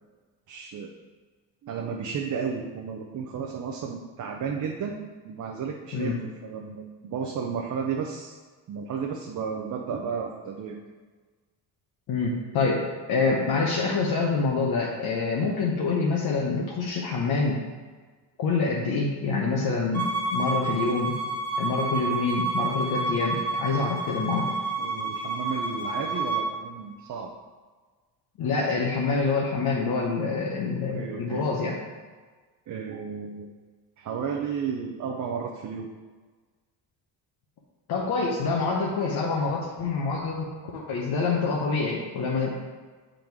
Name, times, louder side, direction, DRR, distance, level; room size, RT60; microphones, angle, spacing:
voice 1, 0.5-0.9 1.6-5.0 5.2-8.4 8.7-10.8 24.8-27.3 30.7-31.4 32.7-33.5 34.0-35.9, right 6 dB, 45° right, 1 dB, 0.6 m, -33 dB
voice 2, 12.1-17.6 18.4-21.1 21.6-24.6 28.4-31.7 37.9-42.5, left 4 dB, 60° left, -3 dB, 0.9 m, -26 dB
Bowed string instrument, 19.9-26.5, right 3 dB, 20° left, 1.4 m, -29 dB
6.9 x 3.8 x 4.6 m, 1.4 s
cardioid pair, 135°, 41 cm